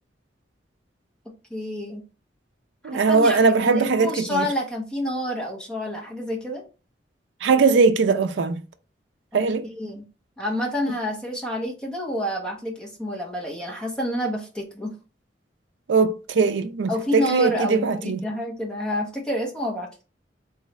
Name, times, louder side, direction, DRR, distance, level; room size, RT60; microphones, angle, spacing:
voice 1, 1.5-2.0 2.9-6.6 9.3-10.1 10.4-14.9 16.9-19.9, equal, 5° left, 1.0 m, -28 dB
voice 2, 2.8-4.5 7.4-8.6 9.3-9.6 15.9-18.2, right 4 dB, 85° right, 0.4 m, -20 dB
3.5 x 3.2 x 3.1 m
head